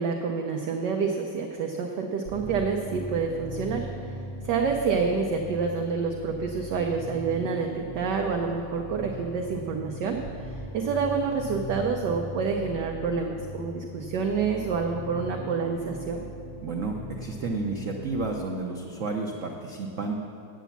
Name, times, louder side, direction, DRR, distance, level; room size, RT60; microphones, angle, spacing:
voice 1, 0.0-4.1 4.4-16.2, right 5 dB, 65° right, 3 dB, 1.1 m, -28 dB
sound 1, 2.2-18.3, equal, 35° left, 2.0 m, -39 dB
voice 2, 16.6-20.2, right 3 dB, 85° right, 1 dB, 0.6 m, -31 dB
9.2 x 8.2 x 7.1 m, 2.7 s
omnidirectional pair, 2.3 m